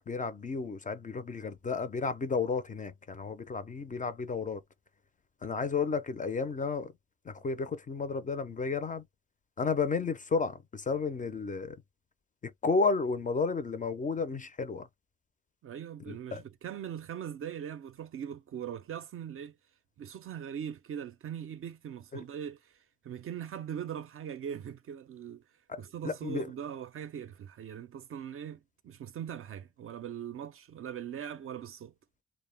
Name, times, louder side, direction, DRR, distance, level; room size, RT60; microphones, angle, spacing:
voice 1, 0.0-4.6 5.4-6.9 7.3-9.0 9.6-11.8 12.6-14.9 16.1-16.4 22.1-22.2 25.7-26.5, left 4 dB, 25° left, 0.4 m, -32 dB
voice 2, 15.6-19.6 20.0-25.4 25.8-31.9, right 9 dB, 45° right, 0.4 m, -41 dB
2.2 x 2.0 x 3.2 m
cardioid pair, 90°, 30 cm